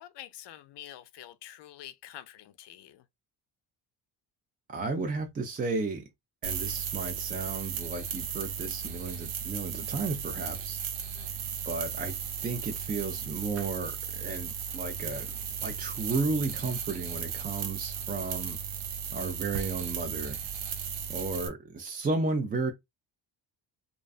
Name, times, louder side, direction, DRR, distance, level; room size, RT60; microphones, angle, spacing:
voice 1, 0.0-3.0 11.2-11.3, left 12 dB, 55° left, 0.5 m, -47 dB
voice 2, 4.7-6.0 6.4-10.8 11.6-12.2 12.4-15.3 15.6-18.6 19.1-20.4 21.1-22.7, right 3 dB, 20° right, 0.3 m, -33 dB
sound 1, 6.4-21.5, right 7 dB, 90° right, 0.6 m, -36 dB
2.5 x 2.2 x 2.3 m
supercardioid pair, 70°, 50 cm